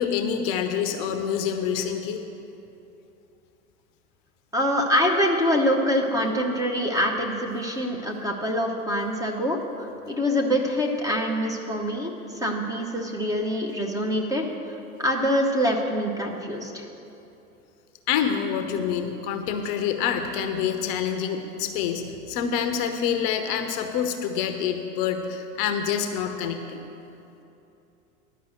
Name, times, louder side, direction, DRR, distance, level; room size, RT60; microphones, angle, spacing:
voice 1, 0.0-2.2 18.1-26.9, left 8 dB, 40° left, 7 dB, 0.8 m, -27 dB
voice 2, 4.5-14.4 15.0-16.9, equal, 10° right, 0 dB, 0.8 m, -25 dB
11.0 x 5.5 x 7.7 m, 2.8 s
figure-of-eight pair, 95°, 45 cm